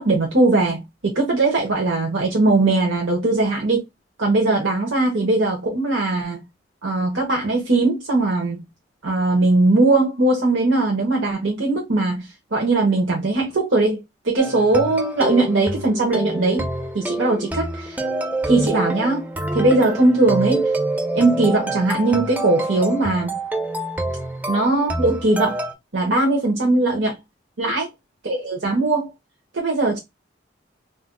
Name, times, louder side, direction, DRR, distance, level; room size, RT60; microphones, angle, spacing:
voice 1, 0.0-3.8 4.2-6.4 6.8-8.6 9.0-16.7 16.9-18.0 18.4-19.3 19.5-20.7 21.1-23.4 24.5-25.6 25.9-27.2 27.6-27.9 28.2-29.1 29.5-30.0, right 2 dB, 85° right, 0.9 m, -20 dB
sound 1, 14.4-25.7, right 1 dB, 10° right, 0.4 m, -27 dB
2.6 x 2.2 x 3.7 m
head